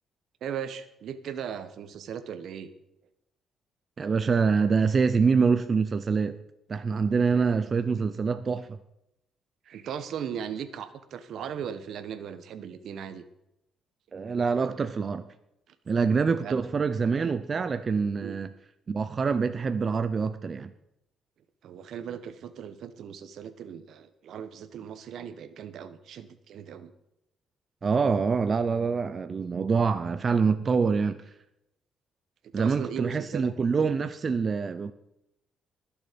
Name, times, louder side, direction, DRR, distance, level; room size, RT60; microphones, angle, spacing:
voice 1, 0.4-2.7 7.3-7.4 9.6-13.2 15.7-15.8 16.4-16.6 18.2-18.4 21.6-26.9 32.6-33.7, right 8 dB, 70° right, 1.1 m, -38 dB
voice 2, 4.0-6.4 6.7-8.8 14.1-15.2 15.9-18.5 18.9-20.7 27.8-31.2 32.5-34.9, right 5 dB, 40° right, 0.7 m, -25 dB
20.5 x 7.2 x 5.2 m
cardioid pair, 90°, 0 cm